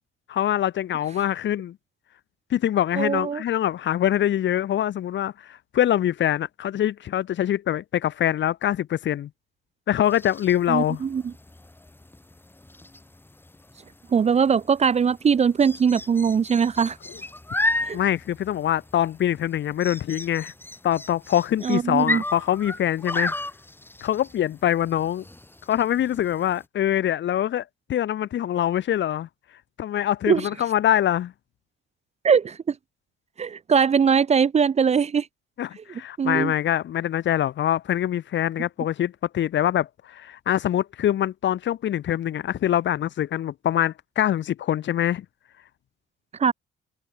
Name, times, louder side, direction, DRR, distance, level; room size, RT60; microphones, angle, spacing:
voice 1, 0.3-1.8 2.5-9.3 9.9-11.0 17.9-20.5 20.8-23.3 24.0-25.2 25.7-27.6 27.9-29.3 29.8-31.3 35.6-45.2, left 11 dB, 65° left, 1.7 m, -24 dB
voice 2, 3.0-3.4 10.7-11.3 14.1-17.0 17.8-18.0 21.6-22.2 30.3-30.5 32.2-32.7 33.4-35.3 36.2-36.5 46.4-46.5, right 6 dB, 35° right, 0.6 m, -21 dB
sound 1, 10.0-26.6, left 2 dB, 10° left, 1.9 m, -34 dB
cardioid pair, 90°, 20 cm